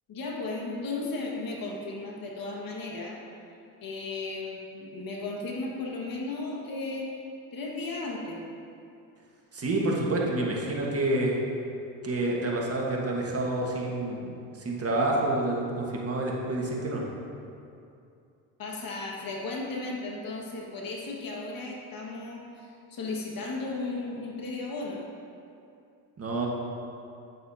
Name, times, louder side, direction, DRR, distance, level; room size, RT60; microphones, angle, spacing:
voice 1, 0.1-3.2 3.8-7.1 7.5-8.4 18.6-25.0, left 3 dB, 45° left, -2 dB, 1.7 m, -35 dB
voice 2, 9.5-11.4 12.0-17.0 26.2-26.5, right 2 dB, 30° right, -2 dB, 1.6 m, -28 dB
8.8 x 8.4 x 2.8 m, 2.6 s
supercardioid pair, 75°, 46 cm